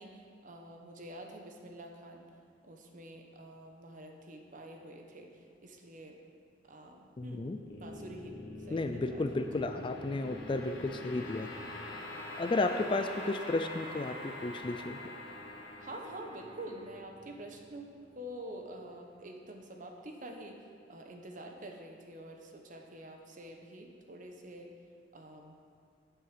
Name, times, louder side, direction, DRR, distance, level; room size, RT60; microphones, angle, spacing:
voice 1, 0.0-2.3 2.6-6.2 6.7-7.4 7.8-8.4 8.7-9.4 12.6-12.8 13.0-13.2 15.8-20.6 20.9-24.7 25.1-25.6, right 1 dB, 45° right, 3 dB, 1.1 m, -47 dB
voice 2, 7.2-7.6 8.7-11.5 12.4-15.0, left 2 dB, 25° left, 8 dB, 0.4 m, -33 dB
sound 1, 7.7-18.9, left 1 dB, 60° left, 1.5 m, -45 dB
8.4 x 6.4 x 7.4 m, 2.4 s
head